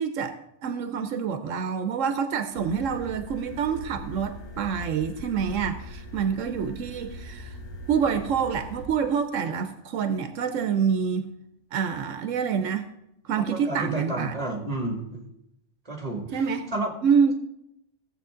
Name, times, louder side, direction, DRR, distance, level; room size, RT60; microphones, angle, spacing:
voice 1, 0.0-7.5 7.9-11.3 11.7-12.8 13.2-14.4 16.3-16.6 17.0-17.3, right 6 dB, 85° right, 1.1 m, -27 dB
sound 1, 2.5-8.8, left 1 dB, 50° left, 4.1 m, -41 dB
voice 2, 13.4-15.2 15.9-16.4 16.7-16.9, right 2 dB, 30° right, 2.3 m, -31 dB
17.0 x 7.5 x 3.7 m
omnidirectional pair, 1.3 m